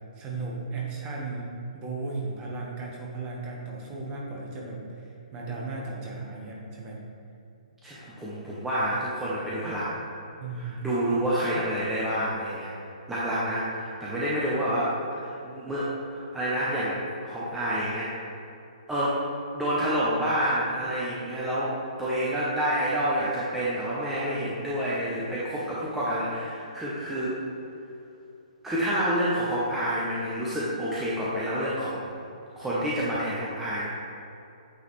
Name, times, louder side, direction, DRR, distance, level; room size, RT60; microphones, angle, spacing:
voice 1, 0.1-7.0 10.4-10.8, right 3 dB, 25° right, -3 dB, 1.3 m, -35 dB
voice 2, 7.8-9.9 10.5-12.7 13.1-18.1 18.9-19.2 19.5-27.4 28.6-32.1 32.6-33.9, equal, 5° right, -9 dB, 0.9 m, -28 dB
8.9 x 3.9 x 3.3 m, 2.7 s
figure-of-eight pair, 130°, 4 cm